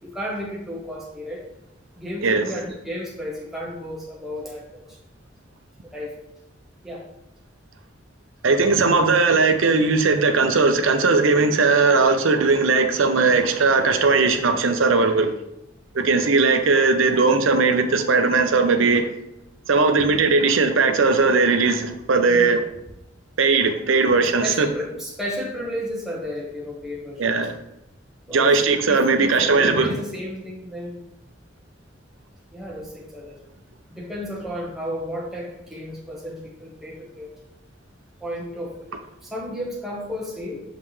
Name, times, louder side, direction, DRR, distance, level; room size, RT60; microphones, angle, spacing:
voice 1, 0.0-1.4 1.9-4.8 5.9-6.1 6.8-7.1 22.3-22.5 24.4-27.3 28.3-28.5 28.9-31.0 32.5-33.3 33.9-37.3 38.2-38.9 39.2-40.6, equal, ahead, 1.2 m, -33 dB
voice 2, 8.4-15.3 15.9-19.0 19.7-22.6 23.4-24.7 27.2-27.5 28.3-29.9, right 4 dB, 85° right, 0.6 m, -18 dB
5.8 x 5.4 x 3.2 m
head